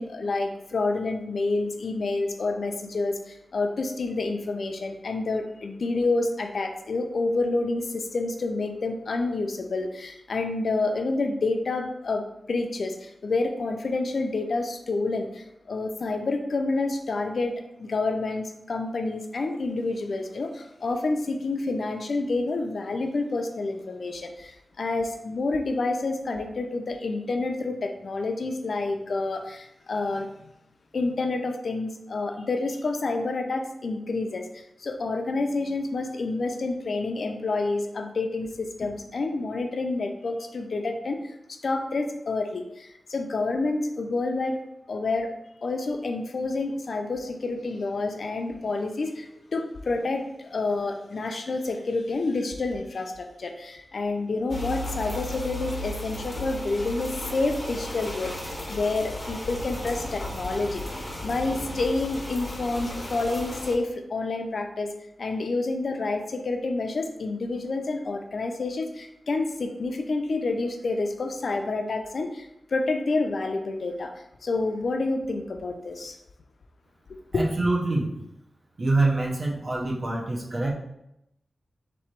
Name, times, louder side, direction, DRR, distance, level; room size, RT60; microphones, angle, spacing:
voice 1, 0.0-17.5 17.8-30.5 30.9-44.6 44.9-45.3 45.6-60.8 61.2-64.9 65.2-74.1 74.4-76.2 77.1-77.5, left 3 dB, 65° left, 4 dB, 0.5 m, -28 dB
sound 1, 54.5-63.7, left 1 dB, 30° left, 1.1 m, -35 dB
voice 2, 77.3-78.1 78.8-80.7, right 2 dB, 50° right, -2 dB, 0.9 m, -25 dB
3.7 x 3.0 x 4.5 m, 0.82 s
wide cardioid pair, 115°, 0 cm